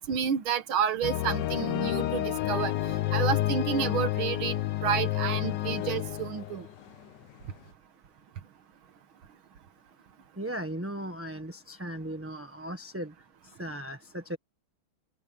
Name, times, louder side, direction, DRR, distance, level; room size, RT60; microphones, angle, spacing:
voice 1, 0.0-6.7, right 8 dB, 85° right, 2.1 m, -30 dB
sound 1, 1.0-7.2 7.5-7.6, left 14 dB, 70° left, 1.3 m, -30 dB
voice 2, 10.4-13.1 13.4-14.4, right 1 dB, 10° right, 1.0 m, -37 dB
omnidirectional pair, 2.2 m